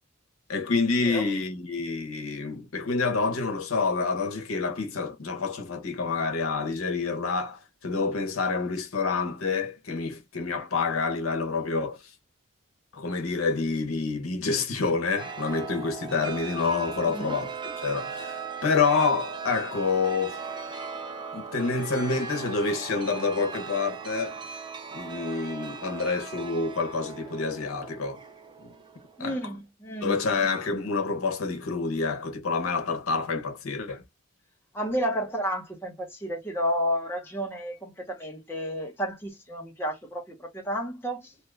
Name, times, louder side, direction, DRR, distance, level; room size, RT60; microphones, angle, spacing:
voice 1, 0.5-12.1 12.9-20.4 21.3-24.6 24.9-28.2 29.2-29.4 30.0-34.0, left 4 dB, 85° left, 0.8 m, -28 dB
Chime, 15.2-29.4, right 5 dB, 20° right, 0.4 m, -38 dB
voice 2, 29.2-30.2 34.7-41.3, equal, 10° left, 0.8 m, -31 dB
2.8 x 2.4 x 3.3 m
head